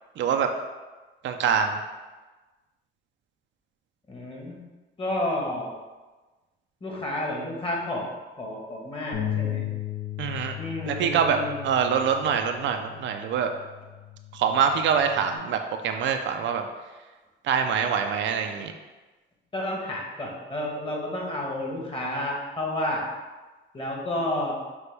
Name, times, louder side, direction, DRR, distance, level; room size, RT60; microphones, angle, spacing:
voice 1, 0.2-0.5 1.2-1.8 10.2-10.6 10.8-13.5 14.3-16.7 17.4-18.7, right 7 dB, 70° right, 5 dB, 0.4 m, -25 dB
voice 2, 4.1-4.6 5.0-5.7 6.8-8.1 8.4-9.7 10.5-11.7 19.5-23.1 23.7-24.6, left 1 dB, 25° left, -2 dB, 1.2 m, -31 dB
Bass guitar, 9.1-15.4, left 11 dB, 75° left, 0.6 m, -36 dB
6.0 x 2.2 x 3.3 m, 1.2 s
cardioid pair, 90°, 20 cm